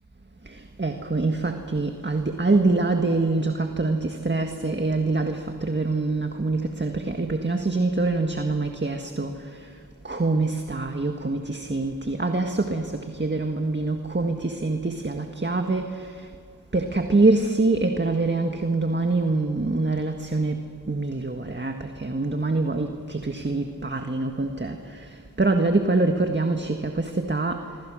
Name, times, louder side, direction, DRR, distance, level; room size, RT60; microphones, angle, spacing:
voice 1, 0.5-9.4 10.0-16.1 16.7-20.6 20.9-25.1 25.4-27.7, right 3 dB, 30° right, 5 dB, 1.7 m, -25 dB
26.5 x 24.5 x 6.4 m, 2.3 s
cardioid pair, 40°, 36 cm